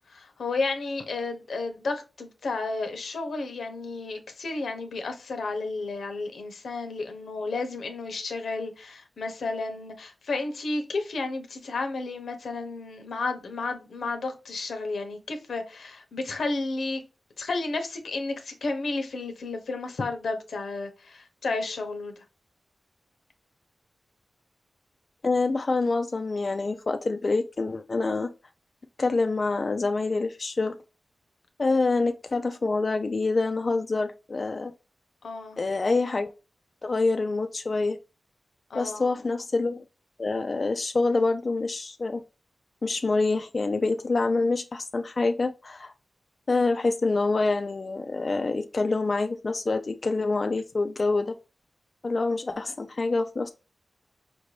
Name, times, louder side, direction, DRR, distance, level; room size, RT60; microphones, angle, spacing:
voice 1, 0.1-17.0 17.4-22.1 35.2-35.6 38.7-39.2, left 3 dB, 85° left, 0.8 m, -32 dB
voice 2, 25.2-28.3 29.0-30.8 31.6-34.7 35.6-36.3 36.8-38.0 38.7-39.8 40.2-42.2 42.8-45.9 46.5-51.3 52.0-53.5, left 3 dB, 45° left, 0.3 m, -26 dB
5.2 x 2.6 x 3.1 m
wide cardioid pair, 100°, 0 cm